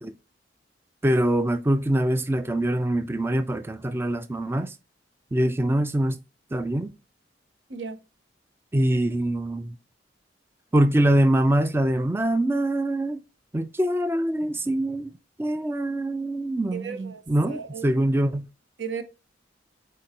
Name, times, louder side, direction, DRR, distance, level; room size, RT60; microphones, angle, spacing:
voice 1, 1.0-4.8 5.3-6.2 6.5-6.9 8.7-9.8 10.7-13.2 13.5-15.1 15.4-18.5, right 1 dB, 15° right, 0.3 m, -24 dB
voice 2, 16.7-17.2 17.5-17.9 18.8-19.0, right 6 dB, 75° right, 0.9 m, -34 dB
7.6 x 4.6 x 2.8 m
head